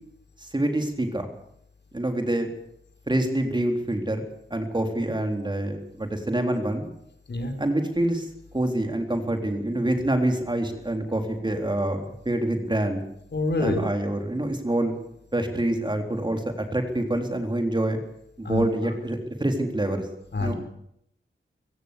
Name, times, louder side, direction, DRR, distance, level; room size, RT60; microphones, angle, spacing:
voice 1, 0.4-1.3 1.9-2.5 3.1-4.2 4.5-6.9 7.6-13.0 13.6-14.9 15.3-18.0 18.4-20.1 20.4-20.5, right 1 dB, 20° right, 4 dB, 3.9 m, -26 dB
voice 2, 13.3-13.8 18.4-18.7 20.3-20.5, left 2 dB, 60° left, 5 dB, 5.3 m, -26 dB
24.5 x 16.5 x 6.9 m, 0.71 s
wide cardioid pair, 110°, 21 cm